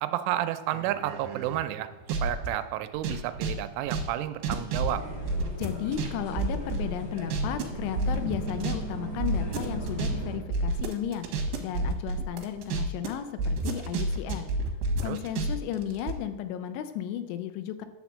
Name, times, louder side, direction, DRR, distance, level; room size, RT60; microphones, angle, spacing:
voice 1, 0.0-1.9 2.2-5.0 15.0-15.2, right 13 dB, 90° right, 10 dB, 3.1 m, -31 dB
sound 1, 0.7-2.5 2.9-6.1 6.4-7.6 8.0-8.7 9.0-13.1 13.4-16.1, right 3 dB, 70° right, 2.9 m, -30 dB
sound 2, 4.8-10.4, right 1 dB, 55° left, 1.4 m, -36 dB
voice 2, 5.6-11.3 11.6-14.5 15.0-17.9, left 10 dB, 85° left, 10 dB, 3.0 m, -34 dB
10.0 x 4.3 x 7.1 m, 1.1 s
omnidirectional pair, 5.5 m